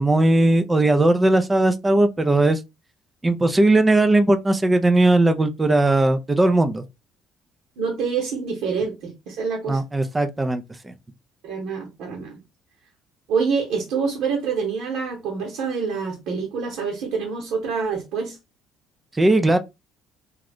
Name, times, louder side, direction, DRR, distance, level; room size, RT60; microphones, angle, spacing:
voice 1, 0.0-2.6 3.2-6.8 9.7-10.9 19.2-19.6, right 2 dB, 20° right, 0.5 m, -18 dB
voice 2, 7.8-9.8 11.4-12.4 13.3-18.4, right 5 dB, 75° right, 1.0 m, -26 dB
2.5 x 2.3 x 3.5 m
supercardioid pair, 80°, 0 cm